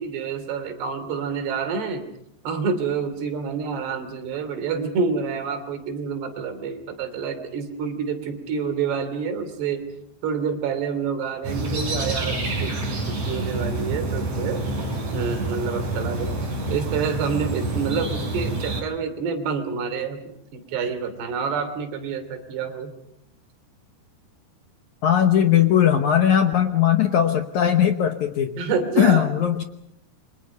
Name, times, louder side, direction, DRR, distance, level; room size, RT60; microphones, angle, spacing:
voice 1, 0.0-2.0 2.5-9.8 10.2-14.6 15.1-16.4 16.7-22.9 28.6-29.3, right 5 dB, 80° right, 8 dB, 5.1 m, -28 dB
sound 1, 11.4-18.8, right 2 dB, 40° right, 6.6 m, -27 dB
voice 2, 25.0-28.6 29.0-29.6, left 10 dB, 70° left, 7 dB, 1.9 m, -19 dB
29.0 x 25.0 x 5.5 m, 0.79 s
omnidirectional pair, 4.7 m